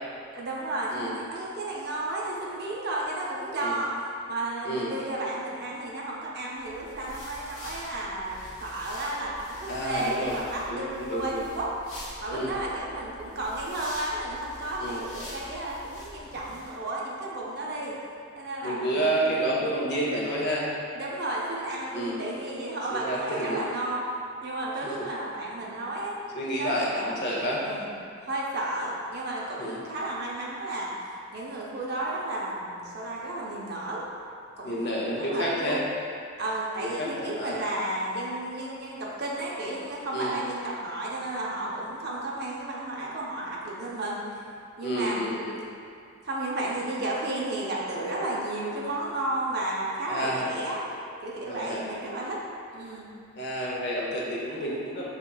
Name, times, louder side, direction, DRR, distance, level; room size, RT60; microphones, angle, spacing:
voice 1, 0.3-3.9 4.3-11.7 12.2-17.9 18.4-19.2 20.9-24.0 24.4-26.3 26.6-27.2 27.6-27.9 28.2-30.9 31.3-34.0 34.6-35.8 36.4-44.2 44.8-45.3 46.2-50.9 51.2-52.4 52.7-53.1, right 2 dB, 50° right, -4 dB, 0.6 m, -33 dB
sound 1, 6.6-16.8, left 1 dB, 65° left, 1.2 m, -45 dB
voice 2, 9.7-10.4 10.7-11.4 12.3-12.5 14.8-15.0 18.6-20.7 21.9-22.2 22.9-23.6 24.8-25.1 26.3-27.7 29.6-29.8 34.6-35.8 36.8-37.6 40.1-40.4 44.8-45.7 50.1-50.5 51.4-51.9 53.4-55.1, right 1 dB, 50° left, -4 dB, 0.7 m, -30 dB
5.4 x 3.5 x 2.3 m, 2.4 s
head